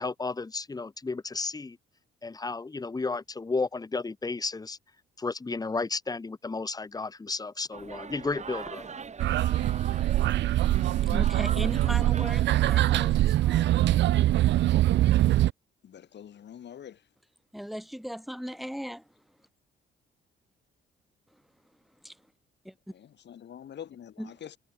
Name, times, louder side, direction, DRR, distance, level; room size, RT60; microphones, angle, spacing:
voice 1, 0.0-1.8 2.2-4.8 5.2-8.9, left 3 dB, 20° left, 0.9 m, -33 dB
sound 1, 7.7-13.4, right 5 dB, 35° right, 2.2 m, -42 dB
sound 2, 9.2-15.5, right 14 dB, 65° right, 0.4 m, -23 dB
voice 2, 10.5-13.8 17.5-19.2 21.3-21.4 22.0-22.3 22.6-22.7 24.2-24.3, equal, ahead, 5.0 m, -38 dB
voice 3, 15.8-17.1 22.9-24.6, left 9 dB, 60° left, 4.1 m, -45 dB
cardioid pair, 90°, 20 cm